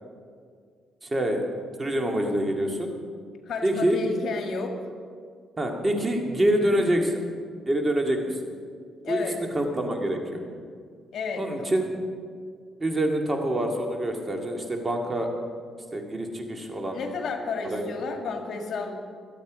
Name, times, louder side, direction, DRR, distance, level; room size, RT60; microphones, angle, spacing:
voice 1, 1.0-1.5 1.8-3.0 3.6-4.0 5.6-7.2 7.7-8.4 9.1-10.4 11.4-11.9 12.8-15.3 15.9-17.0 17.7-17.8, right 1 dB, 25° right, 2 dB, 2.1 m, -26 dB
voice 2, 3.5-4.9 9.0-9.4 11.1-11.7 16.9-18.9, left 4 dB, 65° left, 3 dB, 2.0 m, -32 dB
23.0 x 8.4 x 5.1 m, 2.1 s
cardioid pair, 90°, 0 cm